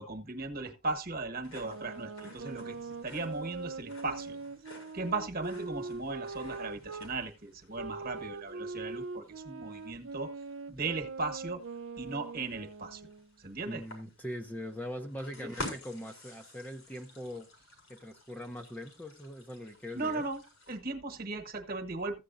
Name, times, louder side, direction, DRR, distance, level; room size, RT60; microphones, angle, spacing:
voice 1, 0.0-4.4 4.9-10.3 10.7-11.6 12.0-13.0 13.4-13.8 15.4-15.5 19.9-20.4 20.7-22.2, right 3 dB, 45° right, 1.3 m, -37 dB
sound 1, 1.4-20.8, left 2 dB, 85° left, 4.6 m, -50 dB
sound 2, 1.6-7.1 7.7-13.3, right 4 dB, 65° right, 0.6 m, -42 dB
voice 2, 13.7-17.5 17.9-20.2, equal, 10° left, 0.6 m, -41 dB
14.5 x 8.2 x 2.6 m
head